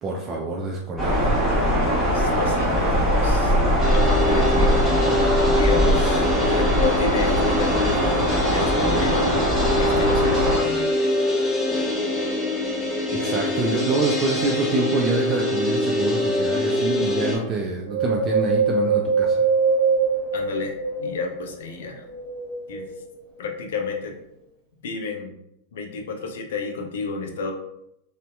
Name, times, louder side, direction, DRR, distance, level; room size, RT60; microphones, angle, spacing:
voice 1, 0.0-1.5 13.1-19.4, right 3 dB, 30° right, -1 dB, 0.3 m, -26 dB
sound 1, 1.0-10.6, equal, 10° right, 1.0 m, -21 dB
voice 2, 2.1-3.5 3.9-4.8 5.6-8.1 8.5-9.3 9.6-10.8 20.3-22.0 22.7-22.9 23.4-24.1 24.8-25.3 25.7-27.5, left 4 dB, 70° left, 2 dB, 0.4 m, -31 dB
sound 2, 3.8-17.4, left 1 dB, 25° left, 0.7 m, -24 dB
Wind, 17.9-21.4 22.0-23.2 23.8-23.9, right 4 dB, 55° right, 0.7 m, -23 dB
2.7 x 2.1 x 2.2 m, 0.81 s
hypercardioid pair, 95°, 0 cm